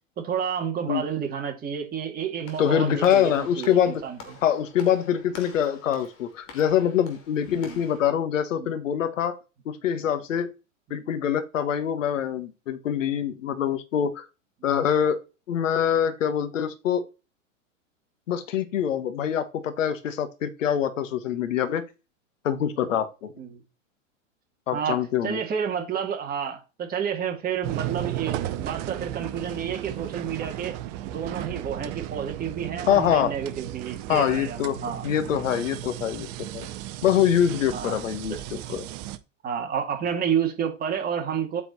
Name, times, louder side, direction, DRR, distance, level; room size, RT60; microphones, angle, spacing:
voice 1, 0.2-4.3 7.6-7.8 8.6-8.7 10.9-11.0 23.4-23.6 24.7-30.8 31.0-35.1 37.7-38.0 38.6-38.8 39.4-41.6, right 7 dB, 25° right, 2.1 m, -30 dB
Walk footsteps / Slam, 2.4-8.0, left 5 dB, 35° left, 2.6 m, -47 dB
voice 2, 2.6-4.0 4.4-9.4 9.6-10.5 10.9-14.3 14.6-15.2 15.5-17.0 18.3-21.8 22.4-23.3 24.7-25.4 32.9-33.3 34.1-36.7 37.0-38.9, left 9 dB, 75° left, 1.6 m, -24 dB
sound 1, 27.6-39.2, right 13 dB, 40° right, 0.8 m, -35 dB
8.6 x 4.4 x 4.2 m
hypercardioid pair, 115°, 38 cm